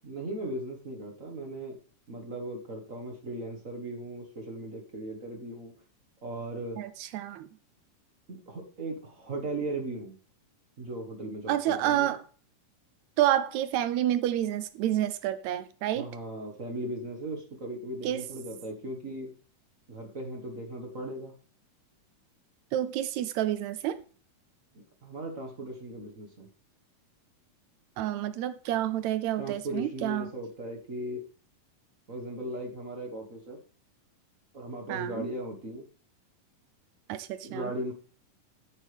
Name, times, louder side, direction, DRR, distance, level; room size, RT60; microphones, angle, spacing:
voice 1, 0.0-1.8 2.1-5.7 6.2-6.8 8.3-10.2 10.8-12.1 15.9-19.3 19.9-21.3 24.7-26.5 29.4-31.2 32.1-33.6 34.5-35.8 37.4-37.9, right 1 dB, 45° right, 1.0 m, -37 dB
voice 2, 6.8-7.5 11.5-12.2 13.2-16.1 18.0-18.3 22.7-24.0 28.0-30.3 34.9-35.3 37.1-37.7, right 12 dB, 85° right, 1.6 m, -29 dB
15.5 x 7.8 x 3.5 m
omnidirectional pair, 3.9 m